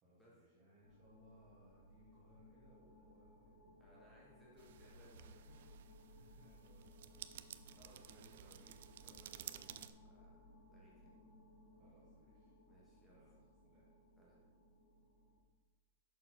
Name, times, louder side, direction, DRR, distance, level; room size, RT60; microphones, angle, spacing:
voice 1, 0.0-4.3 6.0-7.9 11.8-12.5 13.1-13.8, equal, 20° right, -9 dB, 1.5 m, -68 dB
sound 1, 0.8-15.4, left 1 dB, 60° left, 1.3 m, -63 dB
voice 2, 3.8-5.7 7.8-10.4 10.7-11.1 12.6-13.2 14.2-14.4, equal, 5° left, -6 dB, 1.3 m, -65 dB
sound 2, 4.6-9.9, right 11 dB, 55° right, 0.3 m, -54 dB
6.6 x 5.6 x 4.4 m, 1.4 s
hypercardioid pair, 170°, 0 cm